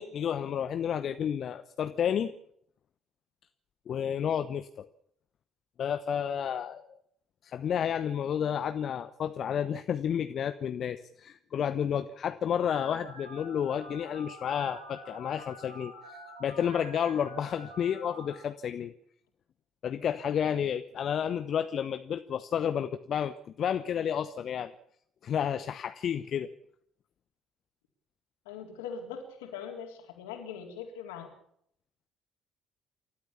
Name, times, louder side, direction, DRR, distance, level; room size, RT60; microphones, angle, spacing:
voice 1, 0.0-2.3 3.9-4.9 5.8-7.0 7.4-18.9 19.8-24.7 25.2-26.5, left 8 dB, 50° left, 11 dB, 1.0 m, -31 dB
Telephone, 12.6-18.4, right 1 dB, 90° right, 3.9 m, -47 dB
voice 2, 28.5-31.3, left 7 dB, 70° left, 3 dB, 4.0 m, -41 dB
29.0 x 13.0 x 7.1 m, 0.68 s
figure-of-eight pair, 50°, 0 cm